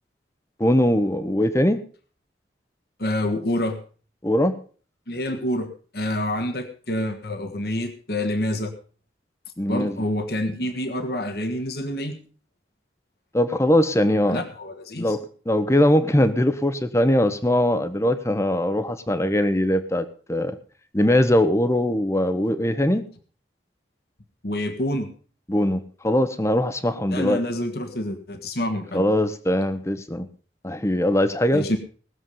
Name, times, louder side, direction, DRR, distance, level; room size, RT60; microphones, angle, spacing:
voice 1, 0.6-1.8 4.2-4.6 9.6-10.0 13.3-14.4 15.0-20.6 20.9-23.0 25.5-27.4 28.9-30.3 30.6-31.7, left 1 dB, 15° left, 11 dB, 1.0 m, -21 dB
voice 2, 3.0-3.8 5.1-5.7 5.9-8.7 9.7-12.2 14.3-15.2 24.4-25.1 27.1-29.0 31.5-31.8, left 1 dB, 60° left, 7 dB, 1.6 m, -27 dB
19.5 x 7.4 x 5.4 m, 0.41 s
head